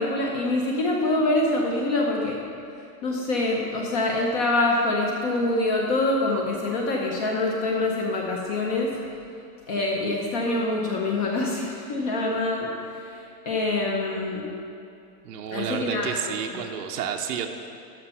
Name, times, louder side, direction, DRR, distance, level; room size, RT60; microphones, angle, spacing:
voice 1, 0.0-2.4 3.0-9.0 9.7-13.2 13.5-14.5 15.5-16.4, left 2 dB, 25° left, -1 dB, 0.6 m, -25 dB
voice 2, 15.2-17.5, right 8 dB, 80° right, 2 dB, 1.0 m, -30 dB
12.5 x 5.8 x 5.6 m, 2.6 s
supercardioid pair, 170°, 46 cm